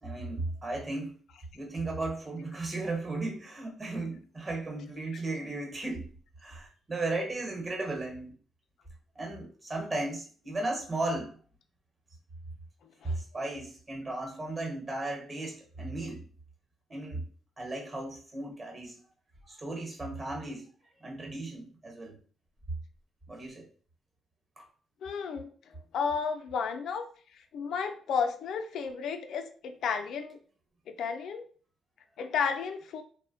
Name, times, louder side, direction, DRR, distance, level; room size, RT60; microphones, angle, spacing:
voice 1, 0.0-1.2 1.5-6.1 6.4-8.3 9.1-11.4 13.0-16.2 16.9-17.3 17.6-19.0 19.4-20.7 21.0-22.2 23.3-23.7 24.6-24.7, right 2 dB, 30° right, 1 dB, 1.0 m, -35 dB
voice 2, 25.0-27.1 27.5-30.4 30.9-31.4 32.2-33.0, left 6 dB, 70° left, 6 dB, 0.3 m, -32 dB
2.9 x 2.0 x 2.6 m, 0.43 s
cardioid pair, 90°, 0 cm